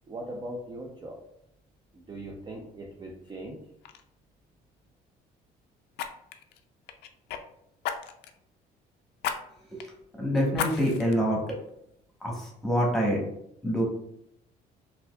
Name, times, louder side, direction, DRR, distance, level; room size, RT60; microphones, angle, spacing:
voice 1, 0.1-1.2 1.9-3.6, right 1 dB, 25° right, 0 dB, 0.4 m, -39 dB
Fire, 3.3-3.5 3.8-4.0 5.9-7.4 7.8-8.4 9.2-9.4 9.8-9.9 10.5-11.2 11.7-11.8, left 9 dB, 75° left, 0.4 m, -34 dB
voice 2, 10.2-11.4 12.2-13.2 13.6-13.8, equal, ahead, -3 dB, 1.2 m, -26 dB
4.1 x 2.7 x 2.3 m, 0.77 s
cardioid pair, 110°, 17 cm